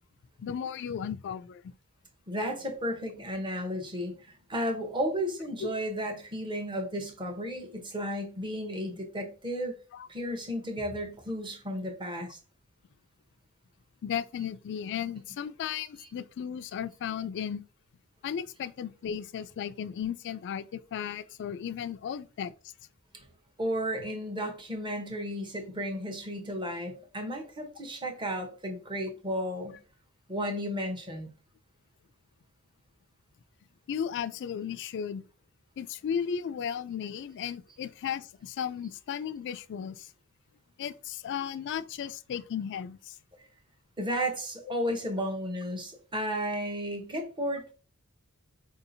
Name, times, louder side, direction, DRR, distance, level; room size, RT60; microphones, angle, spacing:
voice 1, 0.4-1.7 5.6-5.7 9.9-10.1 14.0-17.6 18.2-22.5 33.9-35.2 35.8-40.1 40.8-43.2, left 8 dB, 55° left, 0.3 m, -35 dB
voice 2, 2.3-9.8 10.1-12.4 16.0-16.1 23.1-23.2 23.6-29.8 30.3-31.3 44.0-47.7, equal, 20° right, 0.8 m, -33 dB
4.8 x 2.7 x 2.6 m
head